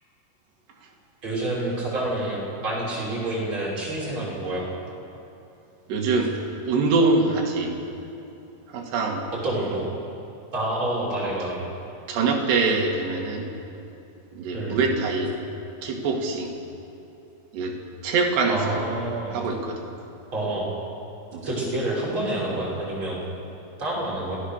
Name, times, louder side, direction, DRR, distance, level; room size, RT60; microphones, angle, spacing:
voice 1, 1.2-4.7 9.4-9.9 10.5-11.6 14.5-14.9 18.5-19.4 20.3-20.7 21.4-23.2 23.8-24.4, right 1 dB, 25° right, -6 dB, 6.3 m, -28 dB
voice 2, 5.9-7.7 8.7-9.2 12.1-13.5 14.3-15.3 15.8-16.5 17.5-17.8 18.0-18.9 19.3-19.8 21.3-21.4, right 3 dB, 70° right, 0 dB, 4.2 m, -24 dB
25.5 x 17.5 x 6.7 m, 2.7 s
omnidirectional pair, 5.2 m